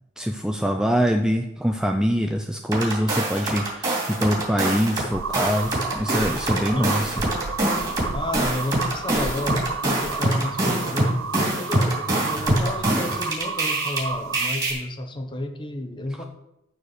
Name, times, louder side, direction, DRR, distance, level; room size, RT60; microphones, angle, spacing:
voice 1, 0.2-3.9 4.2-7.2, equal, 5° right, 4 dB, 0.5 m, -24 dB
sound 1, 2.7-5.1 5.3-14.0 14.3-14.7, right 1 dB, 20° right, 3.5 m, -24 dB
sound 2, 5.1-14.5, right 5 dB, 75° right, 0.7 m, -32 dB
voice 2, 6.7-7.3 8.1-16.3, left 1 dB, 25° left, 6 dB, 1.0 m, -32 dB
13.5 x 4.7 x 6.7 m, 0.88 s
head